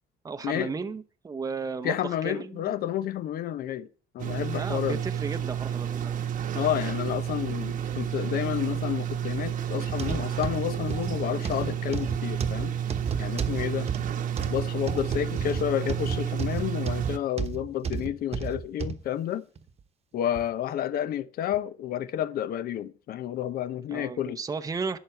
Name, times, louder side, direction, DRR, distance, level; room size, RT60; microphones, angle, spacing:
voice 1, 0.2-2.8 4.5-6.2 23.9-25.0, right 4 dB, 20° right, 0.7 m, -34 dB
voice 2, 1.8-3.9 4.1-5.0 6.5-12.7 13.2-13.9 14.5-19.4 20.1-24.4, left 11 dB, 60° left, 0.8 m, -30 dB
sound 1, 4.2-17.2, right 9 dB, 55° right, 1.1 m, -31 dB
sound 2, 9.9-19.0 19.6-19.7 20.4-20.5, right 6 dB, 40° right, 1.1 m, -32 dB
11.5 x 8.1 x 4.5 m
cardioid pair, 110°, 17 cm